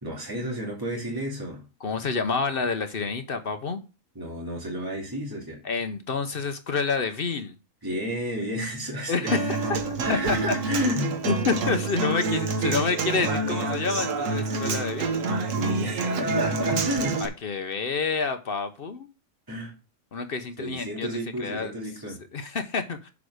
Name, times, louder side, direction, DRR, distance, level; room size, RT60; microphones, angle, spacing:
voice 1, 0.0-1.7 4.1-5.6 7.8-9.4 10.0-11.3 15.6-17.2 19.5-19.7 20.6-22.2, equal, 15° right, -3 dB, 2.5 m, -31 dB
voice 2, 1.8-3.8 5.6-7.5 9.1-10.4 10.8-10.9 11.3-15.2 17.2-19.1 20.1-21.1 21.4-21.7 22.0-23.1, left 4 dB, 50° left, 9 dB, 0.9 m, -28 dB
Human voice / Acoustic guitar, 9.3-17.3, right 3 dB, 75° right, 1.4 m, -27 dB
7.1 x 4.8 x 6.3 m, 0.32 s
omnidirectional pair, 1.3 m